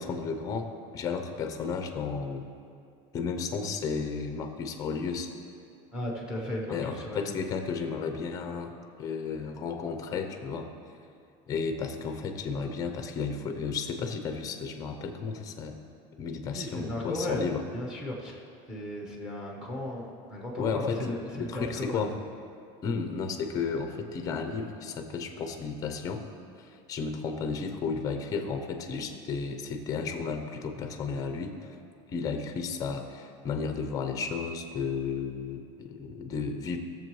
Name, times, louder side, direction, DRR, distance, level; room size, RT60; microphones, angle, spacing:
voice 1, 0.0-2.5 3.1-5.3 6.7-10.7 11.5-15.8 16.2-17.6 20.6-22.2 22.8-26.2 26.6-31.8 32.1-36.8, left 5 dB, 20° left, 6 dB, 0.6 m, -33 dB
voice 2, 5.9-7.3 16.5-18.4 18.7-22.1, left 1 dB, 5° right, -1 dB, 0.9 m, -35 dB
15.0 x 7.1 x 3.1 m, 2.4 s
cardioid pair, 180°, 16 cm